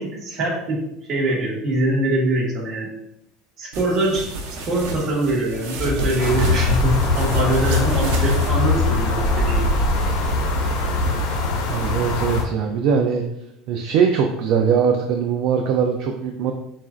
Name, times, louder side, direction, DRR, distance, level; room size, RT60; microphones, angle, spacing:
voice 1, 0.0-2.9 3.6-9.7, right 1 dB, 40° right, -3 dB, 1.4 m, -23 dB
sound 1, 3.7-8.5, right 1 dB, 80° right, 0.9 m, -30 dB
sound 2, 6.2-12.4, left 2 dB, 85° left, 1.2 m, -21 dB
voice 2, 11.7-13.2 13.7-16.5, right 7 dB, 55° right, 3 dB, 0.4 m, -21 dB
7.2 x 2.5 x 2.4 m, 0.81 s
cardioid pair, 145°, 0 cm